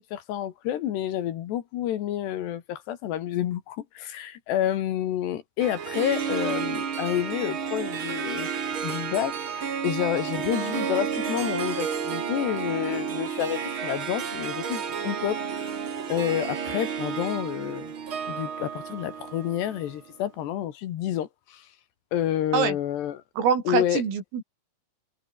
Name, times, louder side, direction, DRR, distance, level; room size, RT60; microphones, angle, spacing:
voice 1, 0.0-8.5 8.8-15.7 16.1-17.9 18.3-21.7 22.1-23.2 23.7-24.0, left 11 dB, 65° left, 3.4 m, -29 dB
Harp, 5.6-20.1, right 7 dB, 60° right, 1.3 m, -31 dB
voice 2, 23.4-24.4, right 7 dB, 85° right, 7.3 m, -24 dB
omnidirectional pair, 5.7 m